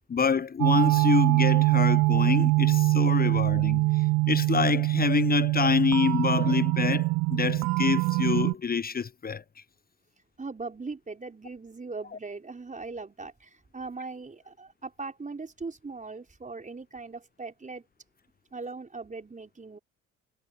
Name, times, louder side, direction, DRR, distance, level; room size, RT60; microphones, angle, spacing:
voice 1, 0.1-3.9 4.3-9.4, left 6 dB, 25° left, 1.0 m, -26 dB
sound 1, 0.6-8.5, right 21 dB, 50° right, 0.7 m, -23 dB
voice 2, 10.4-17.8 18.5-19.8, right 3 dB, 20° right, 4.6 m, -39 dB
figure-of-eight pair, 50°, 40 cm